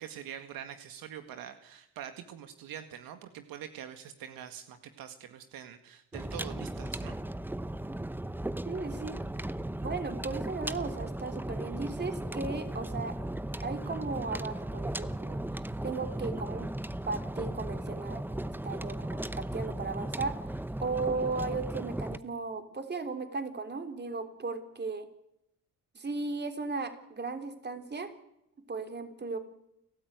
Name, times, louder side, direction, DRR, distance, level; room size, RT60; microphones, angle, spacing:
voice 1, 0.0-7.2, right 9 dB, 75° right, 8 dB, 1.9 m, -44 dB
sound 1, 6.1-22.2, right 1 dB, 5° right, 0.8 m, -36 dB
voice 2, 8.6-9.2 9.8-13.2 13.6-15.4 15.8-16.7 17.1-18.2 18.6-20.3 20.8-25.1 25.9-28.1 28.7-29.4, right 4 dB, 30° right, 7 dB, 3.5 m, -36 dB
29.5 x 13.0 x 9.4 m, 0.83 s
cardioid pair, 90°, 35 cm